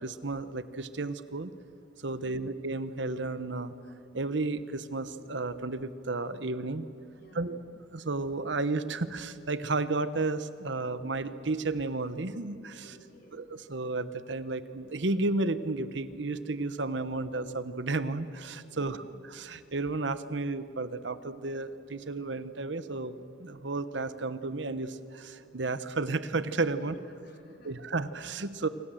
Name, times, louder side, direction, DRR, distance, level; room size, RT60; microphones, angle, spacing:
voice 1, 0.0-1.5 2.0-3.7 4.1-6.9 7.3-7.6 7.9-12.9 13.3-19.0 19.3-27.0 27.6-28.7, right 3 dB, 65° right, 13 dB, 1.0 m, -32 dB
voice 2, 2.2-2.5 7.2-7.5 12.8-13.4 18.7-19.1 26.8-27.8, equal, 50° left, 3 dB, 3.5 m, -55 dB
27.5 x 25.5 x 7.8 m, 2.8 s
head